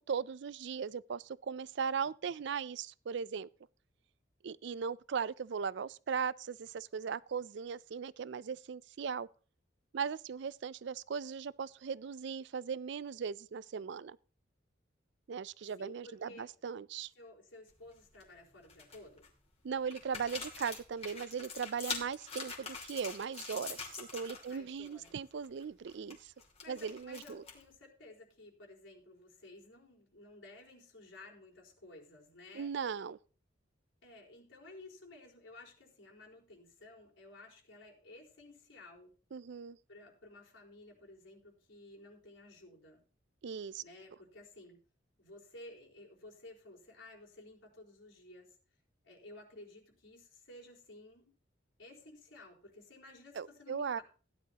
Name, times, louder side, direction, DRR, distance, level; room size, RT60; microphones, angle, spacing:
voice 1, 0.1-3.5 4.4-9.3 9.9-14.2 15.3-17.1 19.6-26.3 26.7-27.4 32.5-33.2 39.3-39.8 43.4-43.8 53.4-54.0, right 6 dB, 65° right, 0.4 m, -38 dB
voice 2, 15.8-16.5 17.2-19.3 24.5-25.1 26.6-32.7 34.0-39.1 39.9-43.0 43.8-44.8 45.2-48.6 49.0-51.3 51.8-54.0, left 2 dB, 90° left, 4.5 m, -54 dB
sound 1, 17.7-18.2 18.6-19.3 19.9-24.6 24.8-25.1 25.4-27.7, left 5 dB, 35° left, 2.7 m, -44 dB
16.5 x 10.5 x 2.9 m
head